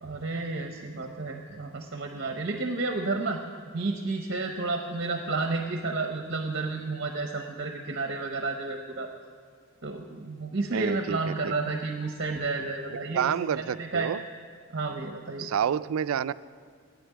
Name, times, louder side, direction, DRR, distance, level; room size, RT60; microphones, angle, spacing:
voice 1, 0.0-3.4 3.7-9.1 9.8-14.1 14.7-15.5, right 3 dB, 50° right, 4 dB, 0.7 m, -31 dB
voice 2, 10.7-11.5 13.1-14.2 15.4-16.3, right 8 dB, 85° right, 16 dB, 0.3 m, -29 dB
9.2 x 9.0 x 9.0 m, 2.1 s
head